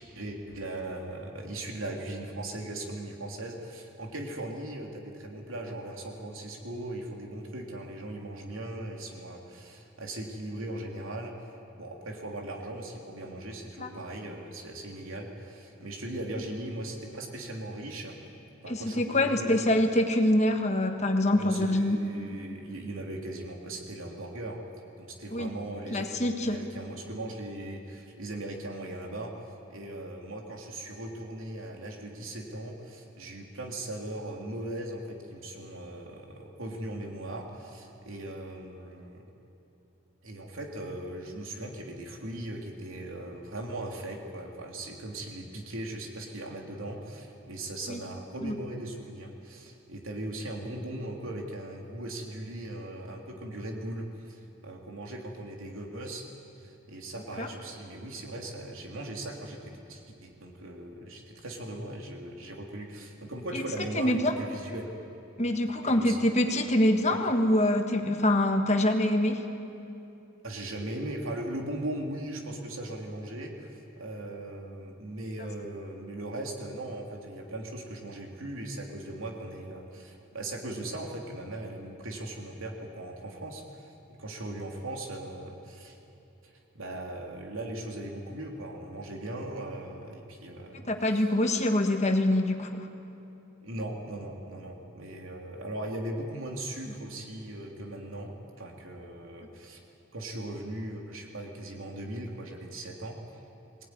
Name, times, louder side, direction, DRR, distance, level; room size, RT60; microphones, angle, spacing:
voice 1, 0.0-11.3 11.7-18.2 18.6-19.7 21.3-24.6 25.0-26.1 26.4-39.2 40.2-56.2 56.6-64.9 65.8-66.2 66.5-66.7 70.4-83.9 84.2-86.0 86.7-91.3 93.6-98.3 98.6-99.8 100.1-103.2, right 1 dB, 85° right, 1 dB, 3.1 m, -39 dB
voice 2, 18.7-22.0 25.3-25.5 25.9-26.6 47.9-48.0 48.4-48.6 57.4-57.5 63.5-63.6 63.9-64.3 65.4-69.4 90.9-92.9, left 1 dB, 35° left, 5 dB, 1.5 m, -25 dB
21.5 x 18.5 x 9.6 m, 2.9 s
head